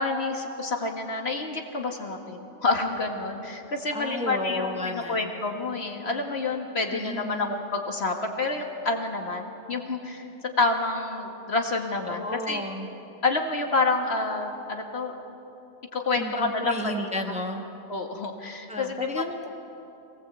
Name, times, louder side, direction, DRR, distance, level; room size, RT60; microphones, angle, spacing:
voice 1, 0.0-10.3 10.6-12.6 13.2-15.2 15.9-17.4 17.9-19.2, left 3 dB, 60° left, 3 dB, 2.0 m, -28 dB
voice 2, 3.9-5.3 6.9-7.5 12.1-12.9 16.2-17.6 18.7-19.5, left 1 dB, 5° right, 3 dB, 1.3 m, -33 dB
23.5 x 18.0 x 8.2 m, 2.8 s
omnidirectional pair, 1.2 m